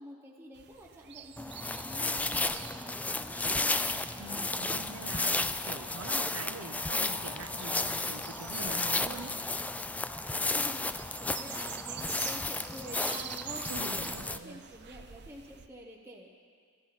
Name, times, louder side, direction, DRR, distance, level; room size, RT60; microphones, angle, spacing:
voice 1, 0.0-3.8 10.5-16.3, equal, 10° right, -3 dB, 1.0 m, -47 dB
sound 1, 0.5-15.7, right 9 dB, 55° right, 0.7 m, -48 dB
sound 2, 1.4-14.4, left 2 dB, 5° left, 0.3 m, -33 dB
voice 2, 4.2-9.3 13.7-14.6, right 3 dB, 90° right, 6 dB, 0.9 m, -44 dB
25.0 x 12.5 x 4.2 m, 2.1 s
head